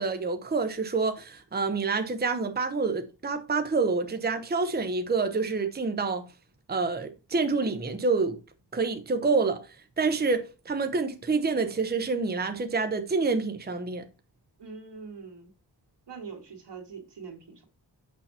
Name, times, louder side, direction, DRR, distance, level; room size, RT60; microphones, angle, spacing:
voice 1, 0.0-6.3 6.7-8.4 8.7-9.6 10.0-14.1, right 4 dB, 25° right, 0.8 m, -27 dB
voice 2, 14.6-15.5 16.1-17.6, right 5 dB, 80° right, 2.1 m, -43 dB
6.3 x 5.8 x 2.8 m
wide cardioid pair, 95°, 41 cm